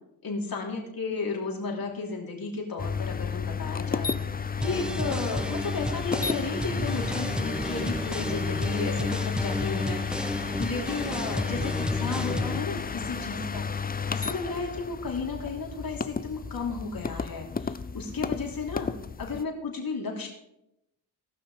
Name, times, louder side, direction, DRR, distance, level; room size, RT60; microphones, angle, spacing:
voice 1, 0.2-4.1 4.6-10.3 10.6-13.7 14.1-18.9 19.2-20.3, left 4 dB, 50° left, 0 dB, 3.3 m, -33 dB
sound 1, 2.8-19.4, left 5 dB, 20° left, 0.6 m, -32 dB
sound 2, 4.6-12.6, equal, ahead, 0.9 m, -33 dB
18.0 x 6.0 x 5.0 m, 0.86 s
supercardioid pair, 50°, 44 cm